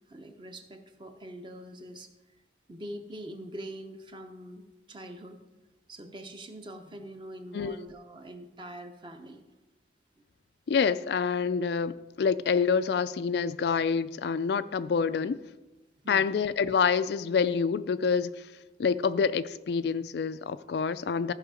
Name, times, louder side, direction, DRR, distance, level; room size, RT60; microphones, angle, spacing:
voice 1, 0.1-2.1 2.7-5.4 5.9-9.4 16.0-16.3, right 1 dB, 25° right, 0.9 m, -44 dB
voice 2, 10.7-15.4 16.1-18.5 18.8-21.3, left 6 dB, 60° left, 0.3 m, -27 dB
14.5 x 5.5 x 5.0 m
head